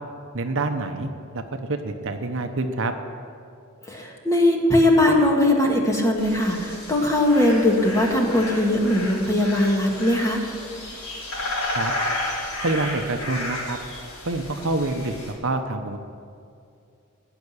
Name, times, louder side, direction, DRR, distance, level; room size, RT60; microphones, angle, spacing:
voice 1, 0.3-1.4 1.7-2.9 11.7-11.9 12.6-13.8 14.2-15.1 15.4-16.0, right 2 dB, 60° right, 6 dB, 0.9 m, -26 dB
voice 2, 3.8-10.4, left 1 dB, 15° left, 0 dB, 1.8 m, -20 dB
sound 1, 6.2-15.3, left 1 dB, 70° left, 4.1 m, -32 dB
17.5 x 6.0 x 10.0 m, 2.5 s
head